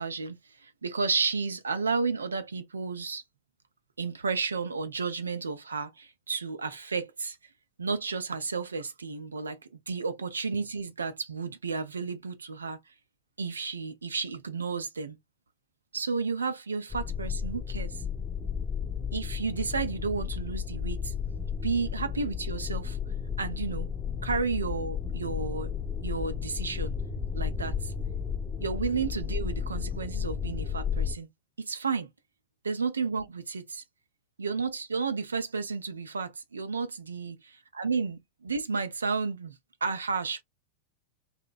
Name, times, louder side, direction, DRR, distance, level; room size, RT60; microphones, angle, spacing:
voice 1, 0.0-3.2 4.0-7.4 7.8-9.6 9.9-12.9 13.4-15.2 15.9-18.0 19.1-21.1 21.6-23.0 23.4-23.9 24.2-25.7 26.0-26.9 27.3-27.9 28.6-31.3 31.6-32.1 32.6-33.8 34.4-37.4 37.8-40.4, right 4 dB, 75° right, 0.4 m, -32 dB
sound 1, 16.9-31.1, left 7 dB, 15° left, 0.6 m, -33 dB
2.7 x 2.1 x 2.4 m
figure-of-eight pair, 90°, 0 cm